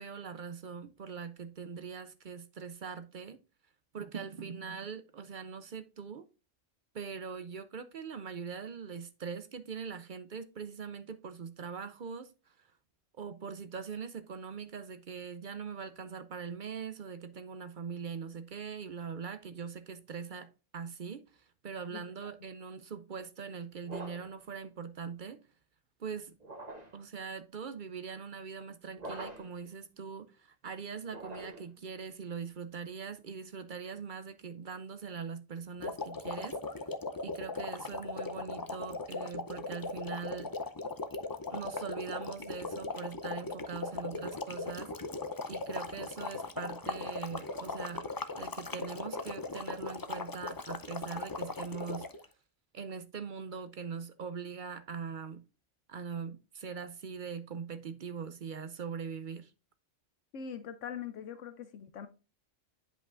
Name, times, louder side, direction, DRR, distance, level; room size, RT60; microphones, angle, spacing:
voice 1, 0.0-3.4 3.9-6.3 6.9-12.3 13.2-21.2 21.6-25.4 26.0-26.3 26.9-36.6 37.2-40.5 41.5-44.9 45.5-48.1 48.4-52.1 52.7-55.4 55.9-59.5, right 6 dB, 55° right, 0.6 m, -42 dB
sound 1, 23.8-24.4 26.4-27.0 28.9-29.6 31.0-31.8, right 2 dB, 30° right, 1.6 m, -44 dB
sound 2, 35.8-52.2, left 3 dB, 35° left, 0.3 m, -38 dB
voice 2, 60.3-62.1, left 7 dB, 75° left, 1.0 m, -42 dB
9.9 x 5.5 x 2.4 m
omnidirectional pair, 1.3 m